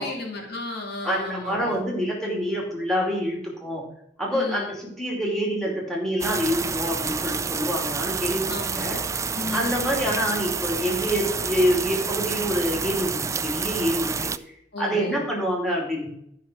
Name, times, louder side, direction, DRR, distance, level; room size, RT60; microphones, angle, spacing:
voice 1, 0.0-1.8 4.3-4.7 8.5-9.0 9.3-9.9 14.7-15.2, left 2 dB, 55° left, 0 dB, 2.5 m, -34 dB
voice 2, 1.0-3.8 4.2-9.0 9.5-14.3 14.8-16.1, equal, ahead, -3 dB, 2.9 m, -26 dB
sound 1, 6.2-14.4, right 5 dB, 15° right, 0.3 m, -29 dB
12.5 x 5.7 x 6.2 m, 0.72 s
head